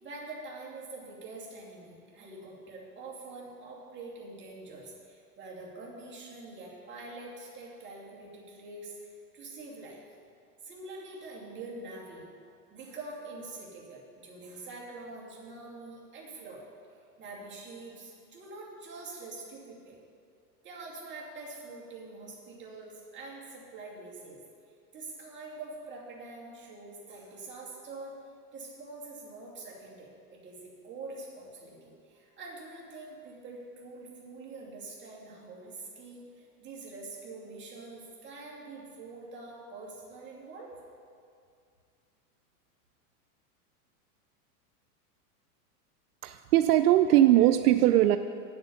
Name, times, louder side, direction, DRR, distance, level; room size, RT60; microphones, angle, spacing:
voice 1, 0.0-10.0 10.6-20.0 20.6-24.4 24.9-28.1 28.5-40.8, right 3 dB, 25° right, -4 dB, 2.5 m, -45 dB
voice 2, 46.2-48.2, right 13 dB, 75° right, 10 dB, 0.5 m, -21 dB
8.9 x 7.9 x 6.8 m, 2.3 s
supercardioid pair, 135°, 46 cm